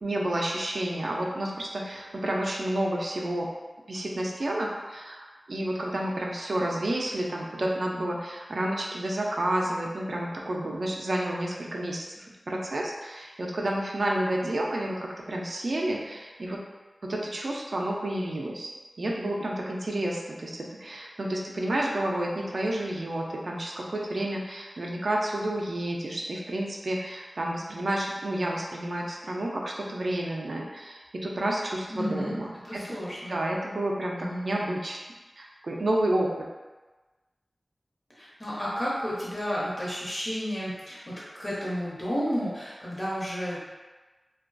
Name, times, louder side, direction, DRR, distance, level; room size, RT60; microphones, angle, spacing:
voice 1, 0.0-3.5 3.9-16.6 17.0-18.7 19.0-33.0 33.3-35.0 35.4-36.5, right 1 dB, 70° right, -2 dB, 0.3 m, -30 dB
voice 2, 31.9-32.4 32.6-33.4 34.2-34.5 38.2-43.7, equal, 45° left, -7 dB, 0.9 m, -32 dB
2.3 x 2.2 x 2.5 m, 1.2 s
wide cardioid pair, 60°, 0 cm